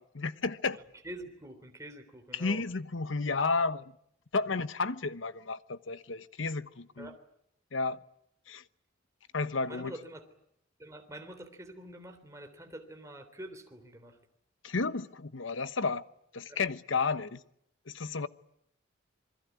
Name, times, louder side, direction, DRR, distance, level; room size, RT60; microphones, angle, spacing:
voice 1, 0.1-0.8 2.3-3.8 4.3-7.1 7.7-8.0 8.5-8.6 9.3-9.9 14.6-16.0 16.3-17.4 17.9-18.3, left 4 dB, 80° left, 1.1 m, -32 dB
voice 2, 1.0-2.6 7.0-7.2 9.6-10.2 10.8-14.2 16.5-16.6, right 1 dB, 15° right, 3.4 m, -46 dB
27.0 x 22.0 x 9.5 m
head